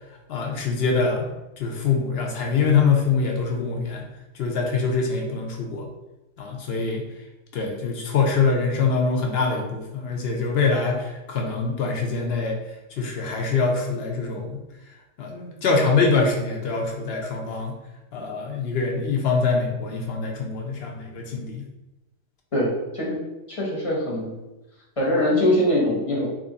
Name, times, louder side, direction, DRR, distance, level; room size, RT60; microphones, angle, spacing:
voice 1, 0.3-1.3 1.6-4.0 4.3-5.9 6.4-7.0 7.5-12.6 13.0-14.6 15.2-17.8 18.1-21.7, left 4 dB, 65° left, 1 dB, 0.7 m, -24 dB
voice 2, 22.5-23.2 23.5-24.3 25.0-26.3, left 1 dB, 30° left, -5 dB, 0.9 m, -22 dB
2.9 x 2.5 x 3.8 m, 1.0 s
omnidirectional pair, 1.3 m